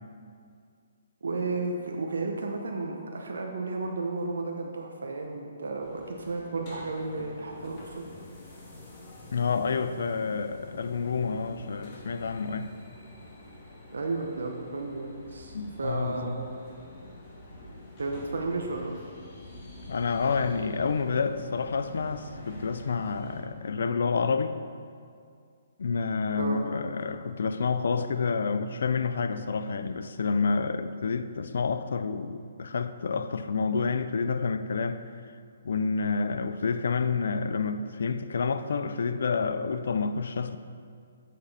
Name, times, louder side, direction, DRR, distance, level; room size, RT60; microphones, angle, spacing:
voice 1, 1.2-8.1 13.9-16.5 18.0-18.9 26.4-26.6, right 3 dB, 80° right, 0.8 m, -33 dB
sound 1, 5.8-23.4, left 2 dB, 35° left, 1.9 m, -47 dB
voice 2, 9.3-12.7 15.5-16.4 19.9-24.6 25.8-35.1 35.6-40.6, left 5 dB, 70° left, 0.4 m, -29 dB
7.6 x 6.6 x 4.2 m
hypercardioid pair, 145°, 0 cm